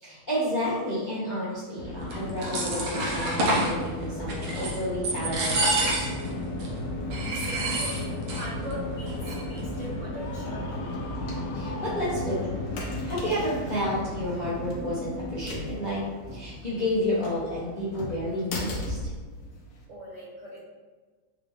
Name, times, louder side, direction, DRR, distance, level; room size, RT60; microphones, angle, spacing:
voice 1, 0.0-6.0 11.5-12.5 13.0-16.0 16.3-19.0, equal, 45° left, -10 dB, 0.6 m, -30 dB
sound 1, 1.8-19.8, left 1 dB, 65° left, 0.9 m, -35 dB
sound 2, 2.1-3.7 4.3-4.8 5.0-6.3 6.6-6.7 7.1-8.5 8.7-8.8 9.1-9.6, right 2 dB, 80° right, 1.7 m, -28 dB
voice 2, 7.0-11.1 16.3-16.5 19.9-20.6, equal, 65° right, -8 dB, 0.7 m, -41 dB
Screaming, 10.1-12.8, left 3 dB, 90° left, 1.5 m, -43 dB
4.8 x 2.4 x 3.3 m, 1.4 s
omnidirectional pair, 2.3 m